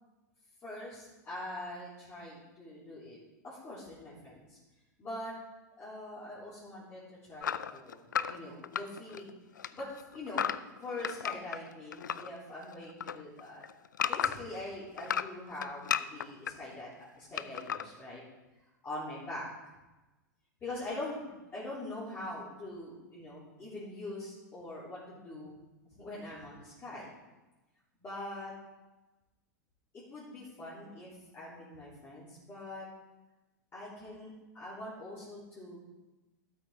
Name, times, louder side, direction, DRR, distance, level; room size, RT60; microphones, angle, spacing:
voice 1, 0.6-3.2 3.4-4.6 5.0-5.4 5.8-9.3 9.7-10.5 10.8-13.6 14.1-16.9 17.2-18.2 18.8-19.5 20.6-25.5 25.9-27.1 28.0-28.5 29.9-32.8 33.7-35.8, left 1 dB, 25° left, -10 dB, 3.6 m, -43 dB
sound 1, 7.4-9.3 9.6-12.3 12.6-14.6 15.0-16.5 17.4-17.9, left 8 dB, 85° left, 0.4 m, -34 dB
13.0 x 8.1 x 3.7 m, 1.1 s
hypercardioid pair, 100°, 10 cm